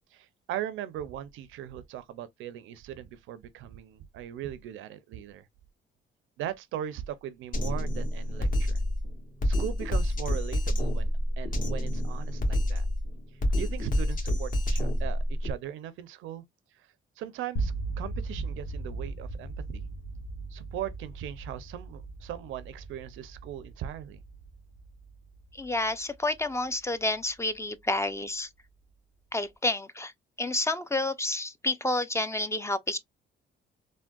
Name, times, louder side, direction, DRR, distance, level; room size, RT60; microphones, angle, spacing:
voice 1, 0.1-5.5 6.4-8.8 9.4-12.8 13.6-16.4 16.8-16.9 17.2-19.9 20.5-24.2, right 11 dB, 85° right, 0.5 m, -39 dB
Drum kit, 7.5-15.5, left 1 dB, 45° left, 1.2 m, -28 dB
sound 1, 17.6-27.5, right 3 dB, 70° left, 0.9 m, -38 dB
voice 2, 25.5-28.5 29.3-30.1 30.4-33.0, left 2 dB, 15° left, 0.4 m, -29 dB
3.5 x 2.1 x 2.2 m
cardioid pair, 90°, 20 cm